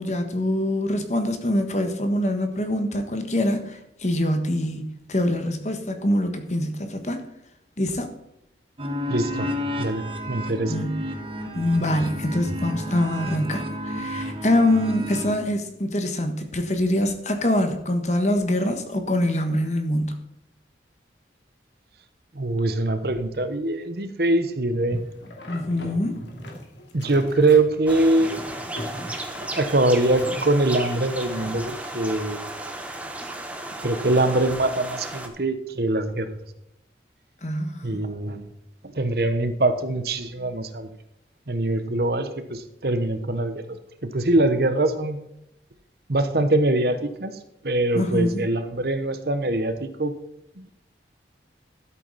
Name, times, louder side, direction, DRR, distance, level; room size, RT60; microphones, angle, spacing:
voice 1, 0.0-7.2 7.8-8.1 10.7-11.0 11.5-20.1 25.5-26.3 37.4-38.0 47.9-48.4, left 1 dB, 40° left, 7 dB, 1.4 m, -24 dB
sound 1, 8.8-15.4, equal, 30° right, 1.4 m, -31 dB
voice 2, 9.1-9.5 9.8-10.7 22.3-25.0 26.9-28.4 29.4-32.4 33.8-36.4 37.8-38.5 38.9-40.9 41.5-43.8 44.0-45.3 46.1-47.3 47.6-50.1 50.6-50.7, right 2 dB, 55° right, 10 dB, 1.0 m, -23 dB
sound 2, 24.9-31.5, left 1 dB, 85° left, 2.5 m, -39 dB
sound 3, 27.9-35.3, right 1 dB, 10° right, 1.1 m, -34 dB
12.0 x 8.4 x 4.1 m, 0.82 s
head